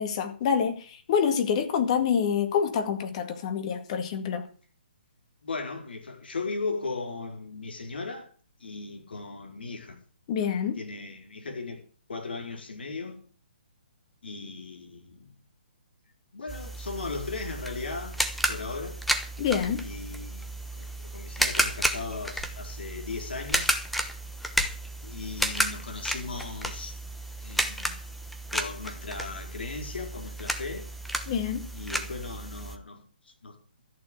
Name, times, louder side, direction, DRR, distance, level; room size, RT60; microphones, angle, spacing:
voice 1, 0.0-4.5 10.3-10.8 19.4-19.8 31.3-31.6, left 7 dB, 40° left, 2.1 m, -27 dB
voice 2, 5.4-8.3 8.6-10.0 10.8-11.8 12.1-13.2 14.2-15.3 16.3-18.2 18.5-19.0 19.8-23.8 25.0-27.0 27.4-28.1 28.5-30.9 31.7-33.1 33.4-33.6, left 3 dB, 75° left, 4.2 m, -37 dB
sound 1, 16.5-32.8, equal, ahead, 0.9 m, -32 dB
14.0 x 7.0 x 8.1 m
hypercardioid pair, 150°, 5 cm